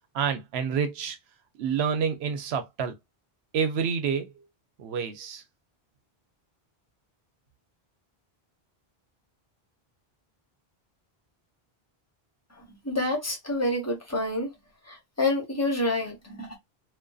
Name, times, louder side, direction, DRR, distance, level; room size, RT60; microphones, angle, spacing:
voice 1, 0.1-1.2 1.6-2.9 3.5-4.4 4.8-5.4, right 6 dB, 90° right, 0.9 m, -28 dB
voice 2, 12.5-14.5 14.8-16.6, left 2 dB, 15° left, 0.9 m, -28 dB
2.5 x 2.2 x 2.3 m
omnidirectional pair, 1.0 m